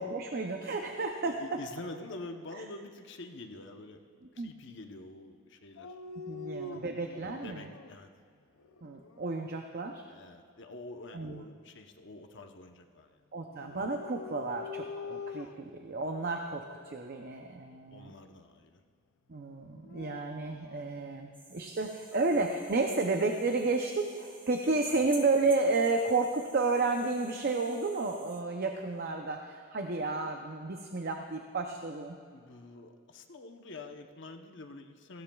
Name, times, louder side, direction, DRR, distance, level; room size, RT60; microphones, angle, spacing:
voice 1, 0.0-1.4 4.4-4.5 6.3-7.7 8.8-10.0 11.1-11.4 13.3-18.1 19.3-32.2, right 3 dB, 45° right, 4 dB, 0.6 m, -32 dB
voice 2, 1.2-4.0 4.3-5.9 6.3-6.8 7.1-8.1 10.0-13.2 17.4-18.8 24.9-25.1 32.3-35.2, left 2 dB, 60° left, 4 dB, 0.9 m, -47 dB
Dog, 5.8-8.0 8.6-9.4 13.5-15.8 16.6-17.0 19.6-20.9, left 4 dB, 80° left, 0.5 m, -45 dB
sound 1, 21.3-28.4, right 2 dB, 10° right, 0.7 m, -52 dB
18.0 x 16.0 x 2.4 m, 2.2 s
head